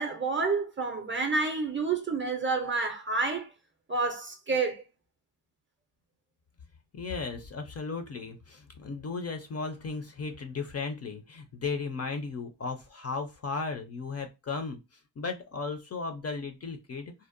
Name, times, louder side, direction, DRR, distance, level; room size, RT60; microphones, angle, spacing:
voice 1, 0.0-3.5 3.9-4.8, right 4 dB, 30° right, 0.4 m, -29 dB
voice 2, 6.9-14.8 15.2-17.1, left 4 dB, 40° left, 0.4 m, -35 dB
2.6 x 2.0 x 2.4 m
wide cardioid pair, 115°, 42 cm